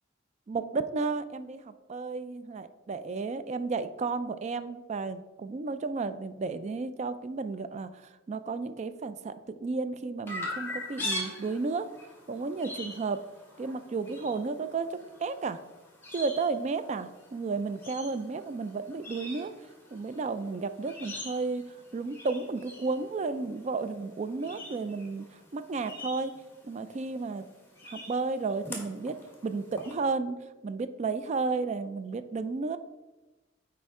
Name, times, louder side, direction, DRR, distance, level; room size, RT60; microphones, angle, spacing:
voice 1, 0.5-7.9 8.3-11.9 12.3-13.2 13.6-15.6 16.1-19.5 19.9-21.7 21.9-26.3 26.6-27.5 27.9-29.2 29.4-32.8, right 4 dB, 35° right, 12 dB, 0.3 m, -33 dB
Chirp tweet, 10.3-29.9, left 1 dB, 10° left, 1.4 m, -43 dB
9.5 x 4.3 x 3.6 m, 1.1 s
head